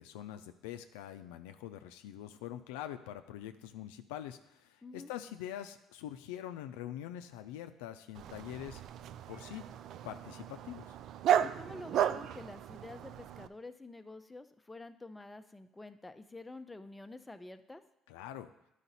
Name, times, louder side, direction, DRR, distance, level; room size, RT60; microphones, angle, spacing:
voice 1, 0.0-8.8 9.3-9.6 10.0-11.0 18.1-18.5, left 11 dB, 85° left, 8 dB, 0.4 m, -44 dB
Dog, 8.1-13.5, right 10 dB, 65° right, 0.3 m, -34 dB
voice 2, 11.4-17.8, left 2 dB, 15° left, 9 dB, 0.6 m, -48 dB
11.0 x 5.0 x 4.1 m, 0.85 s
hypercardioid pair, 65°, 0 cm